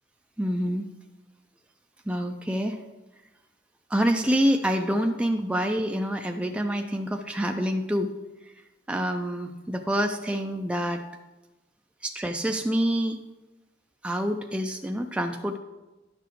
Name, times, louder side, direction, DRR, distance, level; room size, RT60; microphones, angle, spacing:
voice 1, 0.4-0.9 2.1-2.8 3.9-8.1 8.5-8.6 8.9-11.0 12.0-13.2 14.0-15.6, equal, 5° right, 3 dB, 0.3 m, -27 dB
10.5 x 6.9 x 3.0 m, 1.1 s
head